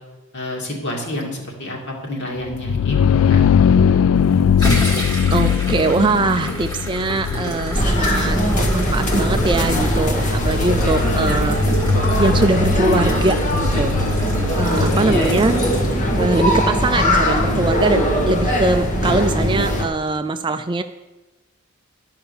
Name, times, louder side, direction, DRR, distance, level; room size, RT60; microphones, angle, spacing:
voice 1, 0.3-3.0 3.3-3.4 11.2-11.4 14.4-14.6 15.0-15.5, left 1 dB, 55° left, -1 dB, 2.6 m, -29 dB
sound 1, 2.4-14.1, left 7 dB, 70° left, 0.3 m, -20 dB
sound 2, 4.1-16.5, right 1 dB, 15° left, 1.7 m, -29 dB
voice 2, 5.3-11.6 12.2-14.0 14.6-15.6 16.2-20.8, right 3 dB, 20° right, 9 dB, 0.3 m, -21 dB
sound 3, 7.7-19.8, equal, 35° left, 1.3 m, -20 dB
12.0 x 5.7 x 7.1 m, 1.1 s
head